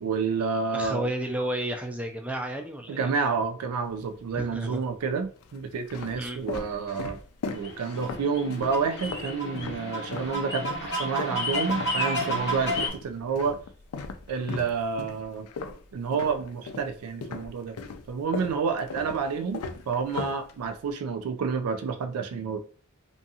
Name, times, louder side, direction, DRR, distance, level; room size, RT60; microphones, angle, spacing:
voice 1, 0.0-1.1 2.9-7.2 7.5-13.5 14.3-15.5 15.9-17.8 18.1-22.6, right 5 dB, 85° right, 7 dB, 0.4 m, -29 dB
voice 2, 0.7-3.1 4.5-4.8 6.2-6.4, right 1 dB, 5° right, 3 dB, 0.3 m, -32 dB
sound 1, 3.8-4.6 5.3-10.4 10.6-16.9 17.2-20.9, left 4 dB, 80° left, 0.4 m, -38 dB
sound 2, 7.6-12.9, equal, 50° left, 0.8 m, -31 dB
2.6 x 2.3 x 2.6 m, 0.43 s
head